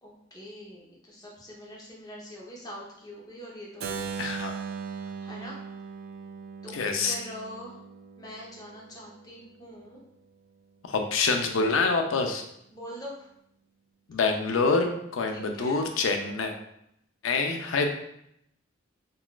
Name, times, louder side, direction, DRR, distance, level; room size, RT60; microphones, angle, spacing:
voice 1, 0.0-3.9 5.2-5.5 6.6-7.7 8.2-10.0 12.7-13.3 15.3-15.8, equal, 20° left, -3 dB, 0.7 m, -43 dB
Keyboard (musical), 3.8-9.6, right 6 dB, 50° right, 0.3 m, -39 dB
voice 2, 4.2-4.5 6.7-7.1 10.9-12.4 14.1-16.5 17.2-17.9, left 4 dB, 90° left, 5 dB, 0.4 m, -26 dB
3.8 x 2.4 x 2.3 m, 0.75 s
head